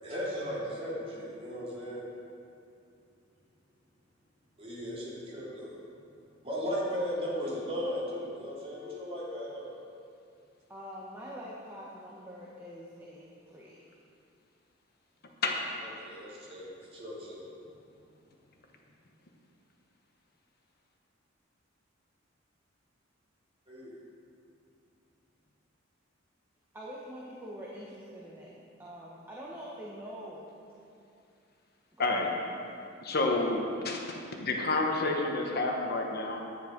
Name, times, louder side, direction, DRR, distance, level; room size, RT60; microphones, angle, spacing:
voice 1, 0.0-2.0 4.6-5.8 6.4-9.6 16.0-17.5 23.7-23.9, equal, 30° right, -7 dB, 3.1 m, -36 dB
voice 2, 10.7-13.9 26.7-28.5 28.8-30.5 32.0-32.3, equal, 10° right, -5 dB, 1.2 m, -44 dB
voice 3, 33.0-34.0 34.4-36.5, left 2 dB, 50° left, 1 dB, 1.2 m, -29 dB
10.5 x 9.9 x 5.2 m, 2.5 s
head